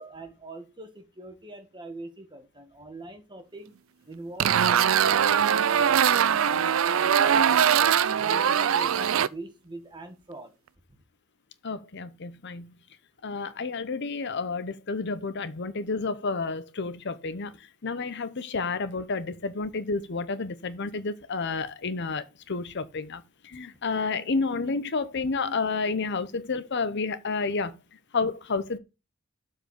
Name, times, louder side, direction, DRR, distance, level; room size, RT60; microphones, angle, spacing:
voice 1, 0.0-3.7 4.1-7.7 8.2-10.5, right 2 dB, 20° right, 1.8 m, -42 dB
sound 1, 4.4-9.3, right 8 dB, 75° right, 0.5 m, -22 dB
voice 2, 11.6-12.8 13.2-27.8 28.1-28.8, left 4 dB, 55° left, 0.8 m, -30 dB
7.8 x 4.7 x 6.6 m
head